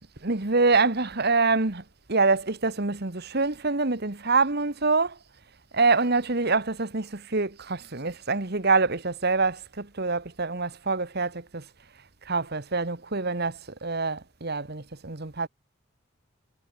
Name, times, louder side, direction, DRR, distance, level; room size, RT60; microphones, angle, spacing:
voice 1, 0.2-1.8 2.1-5.2 5.7-11.7 12.3-15.5, right 3 dB, 55° right, 1.8 m, -25 dB
head